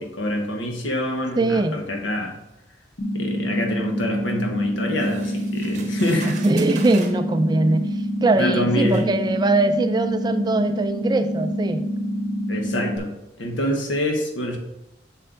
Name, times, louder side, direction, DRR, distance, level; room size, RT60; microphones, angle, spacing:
voice 1, 0.0-2.4 3.1-6.4 8.4-9.1 12.5-14.6, left 1 dB, 80° left, 1 dB, 1.4 m, -26 dB
voice 2, 1.4-1.8 6.3-7.9 8.2-11.8, right 2 dB, 20° right, 9 dB, 0.3 m, -21 dB
sound 1, 3.0-13.0, equal, 50° left, 0.9 m, -27 dB
sound 2, 5.0-7.2 8.2-8.3 8.9-9.1, right 5 dB, 40° right, 0.8 m, -39 dB
7.7 x 6.5 x 2.6 m, 0.89 s
head